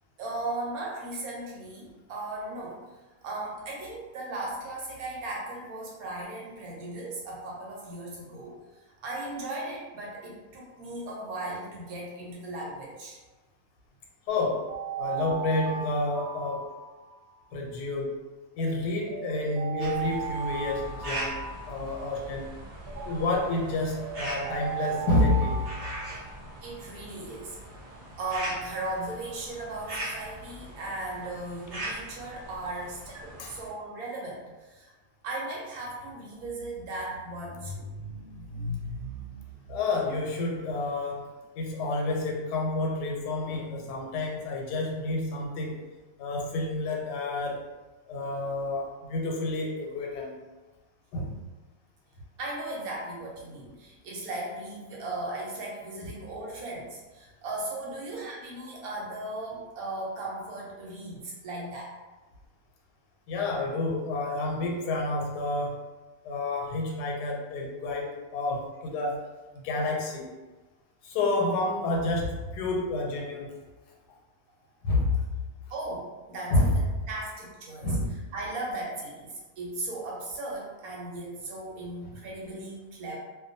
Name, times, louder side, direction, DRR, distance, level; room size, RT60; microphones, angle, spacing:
voice 1, 0.2-2.8 3.2-8.5 9.0-13.2 22.8-23.2 26.6-27.6 28.2-34.9 35.2-39.7 52.4-61.9 75.7-77.9 78.3-83.2, right 2 dB, 70° right, -3 dB, 1.1 m, -37 dB
voice 2, 14.3-14.7 15.0-16.7 17.5-18.2 18.6-22.6 23.1-25.7 33.4-33.6 39.7-41.3 41.6-45.8 46.2-47.6 48.1-50.3 51.1-51.4 63.3-65.8 66.2-69.3 69.5-70.3 71.0-73.5 74.1-74.2 74.8-75.2 76.5-76.7 77.8-78.2 82.0-82.1, left 2 dB, 85° left, 0 dB, 1.2 m, -29 dB
sound 1, 14.3-17.5 18.6-22.3 23.5-26.7, right 7 dB, 90° right, 1.2 m, -37 dB
sound 2, 19.8-33.7, right 1 dB, 45° right, 0.7 m, -40 dB
2.5 x 2.2 x 2.6 m, 1.2 s
omnidirectional pair, 1.7 m